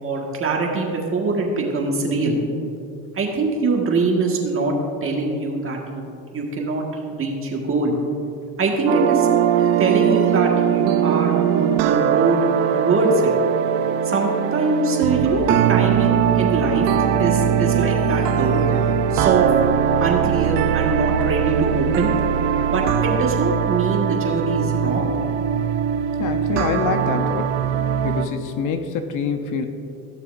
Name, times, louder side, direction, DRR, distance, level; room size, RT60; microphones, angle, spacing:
voice 1, 0.0-2.4 3.1-4.7 5.0-6.0 6.3-6.8 7.1-7.9 8.6-13.3 14.0-18.8 19.1-19.5 20.0-22.1 22.7-25.1, right 3 dB, 35° right, 0 dB, 1.7 m, -23 dB
sound 1, 8.9-28.3, right 9 dB, 85° right, 0.6 m, -20 dB
voice 2, 26.2-27.6 28.0-29.7, left 6 dB, 55° left, 7 dB, 0.8 m, -25 dB
16.0 x 6.6 x 2.6 m, 2.6 s
supercardioid pair, 105°, 37 cm